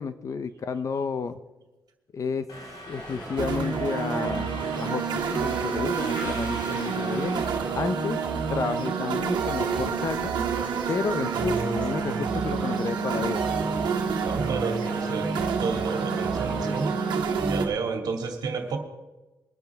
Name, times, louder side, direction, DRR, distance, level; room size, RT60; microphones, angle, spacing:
voice 1, 0.0-1.4 2.1-2.5 2.9-7.4 7.7-8.2 8.5-10.3 10.9-13.4, left 5 dB, 45° left, 12 dB, 0.7 m, -31 dB
Subway metro underground, 2.5-7.5, left 1 dB, 70° left, 4.3 m, -41 dB
sound 1, 2.9-17.4, right 1 dB, 15° left, 2.7 m, -41 dB
sound 2, 3.4-17.7, right 6 dB, 75° right, 1.6 m, -28 dB
voice 2, 14.2-16.9 17.5-18.8, right 4 dB, 60° right, 3 dB, 2.2 m, -31 dB
22.0 x 10.0 x 3.5 m, 1.1 s
cardioid pair, 110°, 8 cm